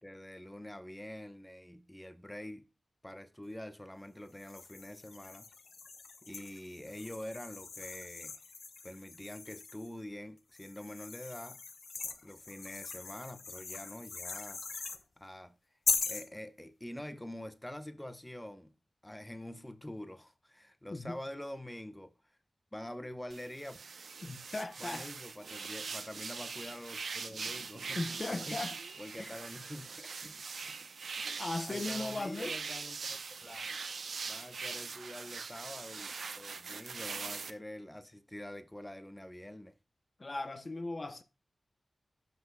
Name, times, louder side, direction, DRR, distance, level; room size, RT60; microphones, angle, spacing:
voice 1, 0.0-2.7 3.0-5.5 6.2-8.4 8.8-11.7 12.2-15.5 16.1-18.7 19.0-22.1 22.7-23.8 24.8-28.0 28.3-28.6 29.0-30.8 31.2-33.8 34.3-39.8, left 1 dB, 10° left, 0.8 m, -46 dB
sound 1, 4.3-9.9 10.5-15.0 15.9-16.3, left 4 dB, 75° left, 0.8 m, -40 dB
sound 2, 23.3-37.5, right 5 dB, 85° right, 0.8 m, -42 dB
voice 2, 24.2-25.1 27.9-28.8 29.2-29.3 31.4-32.6 40.2-41.2, left 2 dB, 45° left, 0.8 m, -38 dB
15.5 x 5.9 x 2.3 m
wide cardioid pair, 65°, 0 cm